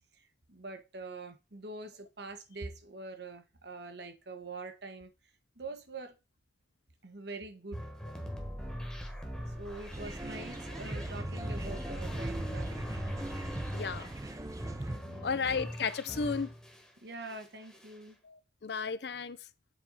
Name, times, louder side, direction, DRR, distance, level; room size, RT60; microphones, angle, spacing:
voice 1, 0.1-5.1 5.6-6.2 7.0-7.9 9.6-12.8 14.9-15.6 17.0-18.2, right 2 dB, 60° right, 1.0 m, -44 dB
sound 1, 7.7-16.9 17.2-18.0, equal, 5° left, 1.2 m, -42 dB
sound 2, 9.9-15.0, right 1 dB, 15° right, 0.4 m, -39 dB
voice 2, 13.7-14.1 15.2-16.5 18.6-19.4, left 5 dB, 55° left, 0.5 m, -33 dB
7.6 x 4.3 x 4.0 m
head